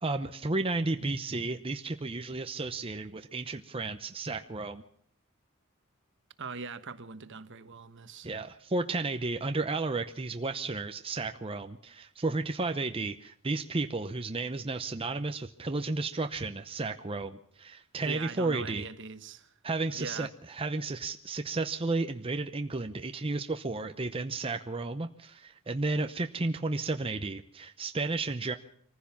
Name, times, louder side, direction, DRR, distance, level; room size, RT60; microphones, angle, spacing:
voice 1, 0.0-4.8 8.2-18.8 19.6-28.6, right 3 dB, 25° right, 0.7 m, -33 dB
voice 2, 6.4-8.3 18.0-19.5 20.0-20.3, right 4 dB, 55° right, 1.2 m, -41 dB
24.5 x 15.0 x 7.1 m
head